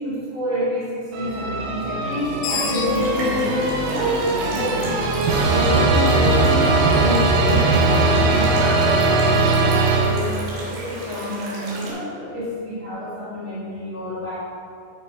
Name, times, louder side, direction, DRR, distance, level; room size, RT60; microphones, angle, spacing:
voice 1, 0.0-14.4, left 1 dB, 60° left, -11 dB, 1.2 m, -28 dB
sound 1, 1.1-10.6, right 3 dB, 85° right, 3.5 m, -20 dB
Screech, 2.1-5.3, left 4 dB, 85° left, 2.2 m, -28 dB
sound 2, 2.9-11.9, right 1 dB, 65° right, 3.9 m, -34 dB
12.0 x 4.6 x 4.5 m, 2.5 s
omnidirectional pair, 5.6 m